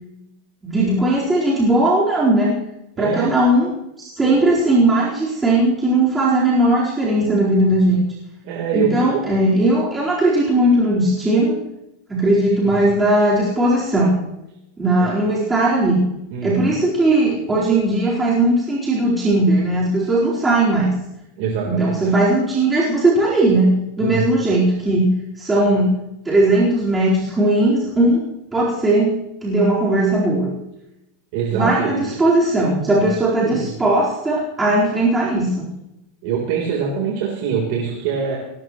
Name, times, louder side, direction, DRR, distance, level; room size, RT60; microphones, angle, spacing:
voice 1, 0.6-2.6 3.0-8.0 8.7-11.6 12.1-14.2 14.8-16.0 16.4-20.9 21.6-25.1 25.4-25.9 26.2-28.2 28.5-30.5 31.5-35.6, right 1 dB, 10° right, -7 dB, 4.3 m, -18 dB
voice 2, 3.0-3.3 8.4-9.3 12.6-12.9 15.0-15.1 16.3-16.7 21.4-22.0 24.0-24.2 31.3-32.1 33.0-33.7 36.2-38.4, right 7 dB, 60° right, -2 dB, 3.8 m, -24 dB
19.0 x 18.0 x 3.1 m, 0.89 s
supercardioid pair, 150°, 0 cm